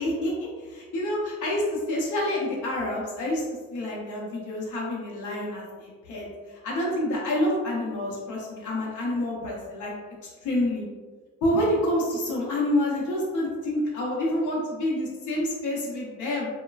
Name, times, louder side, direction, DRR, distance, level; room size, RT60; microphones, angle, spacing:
voice 1, 0.0-3.4 3.7-9.9 10.4-10.8 11.4-16.5, left 1 dB, 80° left, -3 dB, 0.8 m, -28 dB
3.1 x 2.1 x 2.3 m, 1.4 s
cardioid pair, 90°, 30 cm